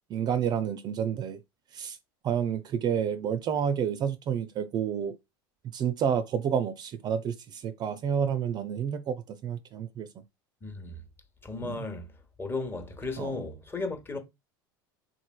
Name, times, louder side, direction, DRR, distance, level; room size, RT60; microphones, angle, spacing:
voice 1, 0.1-1.4 1.7-2.0 2.2-5.2 5.7-10.1 11.6-11.8 13.2-13.4, right 8 dB, 35° right, 0.4 m, -29 dB
voice 2, 10.6-11.0 11.4-12.1 12.4-14.2, left 3 dB, 20° left, 0.8 m, -35 dB
3.8 x 3.1 x 2.2 m
hypercardioid pair, 90°, 12 cm